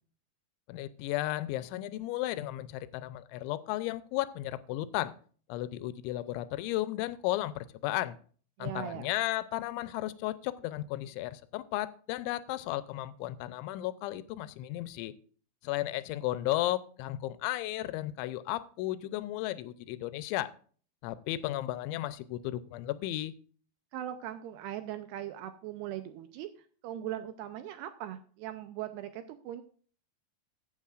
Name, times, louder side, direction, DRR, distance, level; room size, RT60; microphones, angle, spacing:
voice 1, 0.7-5.1 5.5-8.2 8.6-15.1 15.6-20.5 21.0-23.3, left 15 dB, 90° left, 15 dB, 3.0 m, -34 dB
voice 2, 8.6-9.1 23.9-26.5 26.8-29.6, right 12 dB, 80° right, 9 dB, 2.5 m, -39 dB
15.5 x 8.5 x 2.5 m, 0.44 s
omnidirectional pair, 5.3 m